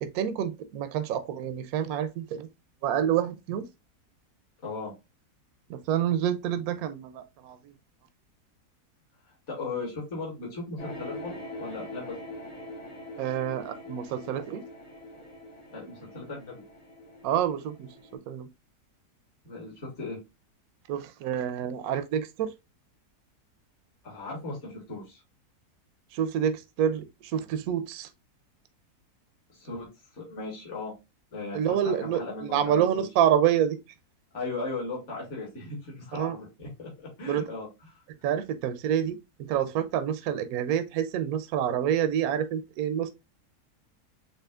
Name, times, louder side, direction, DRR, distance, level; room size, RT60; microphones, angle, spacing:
voice 1, 0.0-2.5 2.8-3.7 5.7-7.6 13.2-14.6 17.2-17.9 18.3-18.5 20.9-22.5 26.1-28.1 31.5-33.8 36.1-36.4 37.3-37.4 38.2-43.1, right 9 dB, 75° right, 1.0 m, -27 dB
voice 2, 4.6-4.9 9.5-12.2 15.7-16.6 19.4-20.2 24.0-25.2 29.5-29.9 30.1-30.9 31.3-33.1 34.3-38.0, left 3 dB, 50° left, 2.2 m, -37 dB
sound 1, 10.8-18.2, left 1 dB, 65° left, 3.1 m, -43 dB
7.4 x 2.8 x 2.4 m
omnidirectional pair, 1.7 m